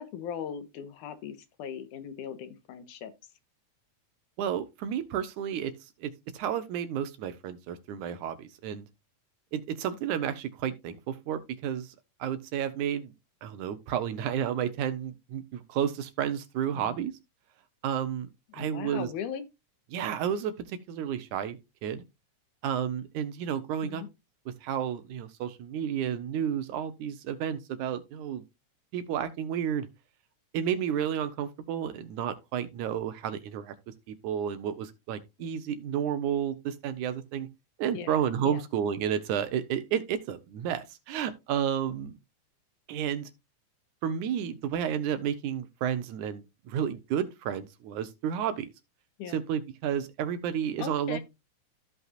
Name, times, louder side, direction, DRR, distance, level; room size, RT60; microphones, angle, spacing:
voice 1, 0.0-3.1 16.7-17.0 18.5-19.4 23.8-24.1 35.4-35.5 37.9-38.6 49.2-49.4 50.8-51.2, left 8 dB, 80° left, 2.6 m, -39 dB
voice 2, 4.4-5.7 6.0-8.9 9.5-11.9 12.2-13.1 13.4-17.2 17.8-19.1 19.9-22.0 22.6-24.0 24.5-28.4 28.9-29.9 30.5-33.8 34.1-37.5 37.8-42.1 42.9-43.3 44.0-48.7 49.3-51.2, right 9 dB, 75° right, 2.3 m, -31 dB
15.0 x 5.4 x 2.4 m
omnidirectional pair, 3.6 m